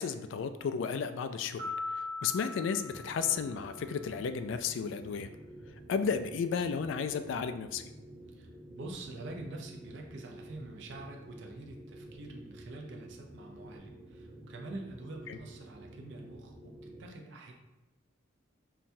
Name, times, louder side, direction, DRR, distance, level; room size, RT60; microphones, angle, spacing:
voice 1, 0.0-5.3 5.9-7.8 15.3-15.4, left 6 dB, 70° left, 10 dB, 0.3 m, -33 dB
sound 1, 1.6-4.1, left 3 dB, 80° right, 1.3 m, -41 dB
sound 2, 2.8-17.0, right 1 dB, 10° right, 0.7 m, -51 dB
voice 2, 8.3-17.5, right 2 dB, 65° right, 1 dB, 0.6 m, -46 dB
5.6 x 2.2 x 2.6 m, 1.1 s
head